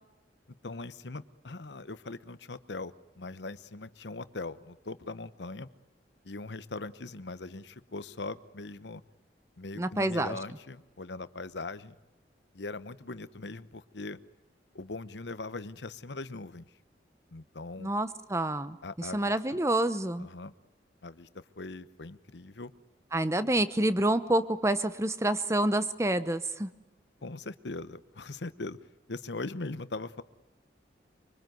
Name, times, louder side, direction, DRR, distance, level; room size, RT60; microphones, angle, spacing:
voice 1, 0.6-5.7 6.2-9.0 9.6-12.0 12.5-14.2 14.7-16.7 17.3-17.9 18.8-19.6 20.2-20.5 21.0-22.7 27.2-28.8 29.1-30.2, left 3 dB, 80° left, 14 dB, 1.0 m, -40 dB
voice 2, 9.8-10.4 17.8-20.3 23.1-26.7, right 1 dB, 15° right, 12 dB, 1.0 m, -28 dB
24.5 x 24.0 x 9.4 m, 1.1 s
head